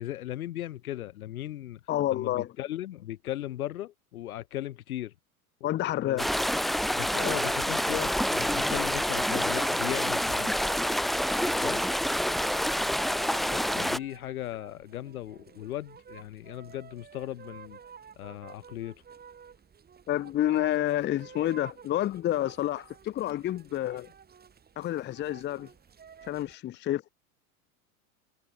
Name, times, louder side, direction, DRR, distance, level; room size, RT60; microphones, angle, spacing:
voice 1, 0.0-1.8 2.1-5.1 6.0-6.3 7.0-10.6 11.4-11.8 13.7-17.8 18.2-19.0, left 13 dB, 65° left, 1.8 m, -37 dB
voice 2, 1.9-2.5 5.6-6.3 12.8-13.9 20.1-24.1 24.8-25.7 26.3-27.1, left 13 dB, 25° left, 0.8 m, -30 dB
sound 1, 6.2-14.0, equal, ahead, 0.4 m, -27 dB
sound 2, 7.1-26.6, right 7 dB, 20° right, 3.2 m, -52 dB
figure-of-eight pair, 90°, 46 cm